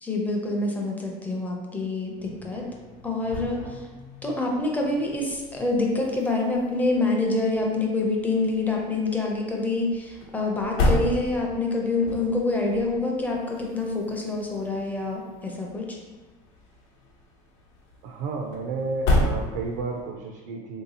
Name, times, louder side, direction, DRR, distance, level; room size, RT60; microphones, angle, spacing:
voice 1, 0.0-2.7 3.0-3.9 4.2-16.0, left 2 dB, 10° left, -1 dB, 0.5 m, -26 dB
sound 1, 2.0-20.1, left 1 dB, 75° left, 0.8 m, -33 dB
voice 2, 18.0-20.8, right 4 dB, 80° right, 1 dB, 0.5 m, -32 dB
3.5 x 2.7 x 2.7 m, 1.2 s
cardioid pair, 140°, 17 cm